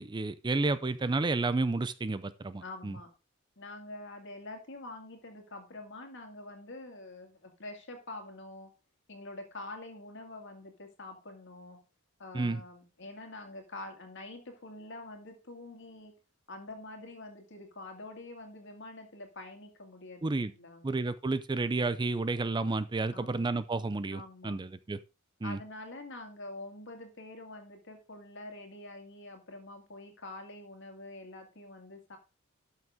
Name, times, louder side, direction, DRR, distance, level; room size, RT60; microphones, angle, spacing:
voice 1, 0.0-3.0 12.3-12.6 20.2-20.5 20.8-25.0 25.4-25.6, right 3 dB, 20° right, 15 dB, 0.4 m, -31 dB
voice 2, 2.6-3.1 3.6-8.7 9.1-11.8 12.2-16.1 16.5-20.9 23.1-23.6 24.1-24.6 25.4-32.2, left 2 dB, 60° left, 4 dB, 2.2 m, -46 dB
12.5 x 6.1 x 3.7 m, 0.30 s
head